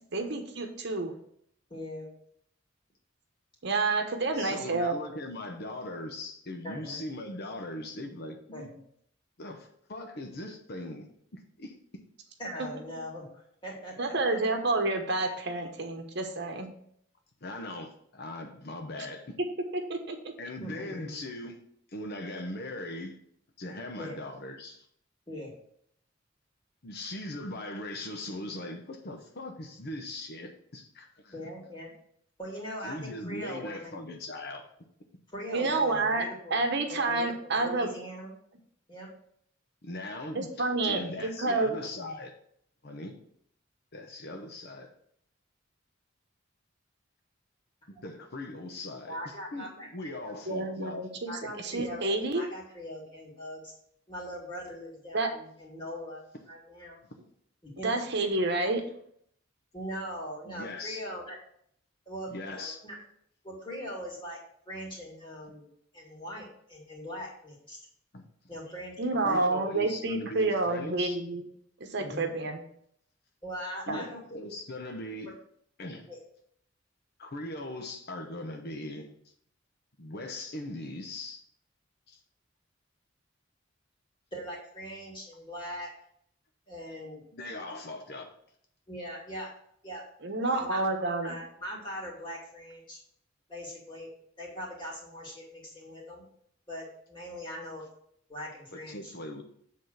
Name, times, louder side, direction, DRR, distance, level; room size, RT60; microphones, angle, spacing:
voice 1, 0.1-1.1 3.6-5.0 12.6-12.7 14.0-16.7 19.0-19.1 19.9-20.3 35.5-37.9 40.3-41.7 50.5-51.3 51.6-52.4 55.1-55.3 57.8-58.8 69.0-71.5 71.8-72.6 73.9-74.0 90.2-91.3, right 3 dB, 60° right, 4 dB, 1.1 m, -29 dB
voice 2, 1.7-2.1 6.6-7.0 8.5-8.8 12.4-13.3 13.6-14.7 20.6-21.2 24.0-24.2 25.3-25.5 31.3-31.9 32.4-34.0 35.3-38.3 38.9-39.1 47.9-48.0 49.1-50.4 51.3-53.7 54.1-56.2 56.5-57.0 57.6-57.9 59.7-61.4 62.1-63.0 63.4-64.4 64.7-65.7 65.9-67.8 68.5-69.2 72.0-72.3 73.4-74.2 76.1-76.2 84.3-85.9 86.7-87.2 88.9-89.5 89.8-90.0 90.5-93.0 93.5-94.1 94.4-96.2 96.7-97.8 98.3-99.1, equal, 25° left, -3 dB, 2.7 m, -41 dB
voice 3, 4.3-8.7 9.4-11.1 11.3-12.0 17.4-19.4 20.4-21.6 21.9-23.2 23.6-24.9 26.8-31.3 32.8-34.7 39.8-42.3 42.8-43.2 43.9-44.9 48.0-51.0 51.8-51.9 60.4-61.0 62.3-62.8 68.1-68.3 69.2-71.2 73.9-75.4 75.8-76.1 77.2-79.1 80.0-81.4 82.1-82.2 87.3-88.4 98.7-99.4, left 1 dB, 55° left, 4 dB, 0.9 m, -40 dB
7.8 x 3.8 x 6.3 m, 0.67 s
head